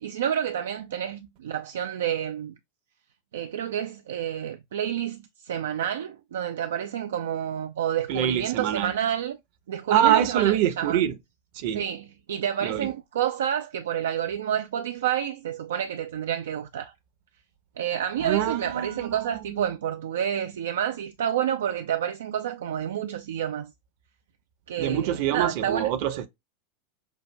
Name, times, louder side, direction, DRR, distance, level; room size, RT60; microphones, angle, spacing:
voice 1, 0.0-2.5 3.3-9.4 9.7-11.0 11.7-16.9 17.8-23.7 24.7-25.9, right 9 dB, 70° right, 0.4 m, -29 dB
voice 2, 8.1-8.9 9.9-11.1 11.5-11.8 12.6-12.9 18.2-19.7 24.8-26.3, right 11 dB, 55° right, 0.7 m, -25 dB
6.2 x 2.5 x 2.2 m
figure-of-eight pair, 85°, 0 cm